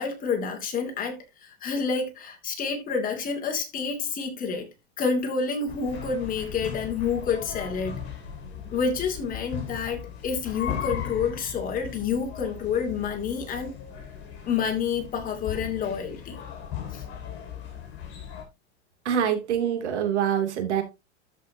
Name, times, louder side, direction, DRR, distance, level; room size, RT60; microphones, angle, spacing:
voice 1, 0.0-4.7 5.0-8.0 8.7-13.7 14.4-16.4 16.9-17.0, left 5 dB, 25° left, 2.6 m, -28 dB
sound 1, 5.7-18.4, left 9 dB, 40° left, 5.1 m, -37 dB
voice 2, 19.0-20.8, right 9 dB, 85° right, 2.9 m, -25 dB
13.0 x 5.7 x 2.8 m
supercardioid pair, 145°, 34 cm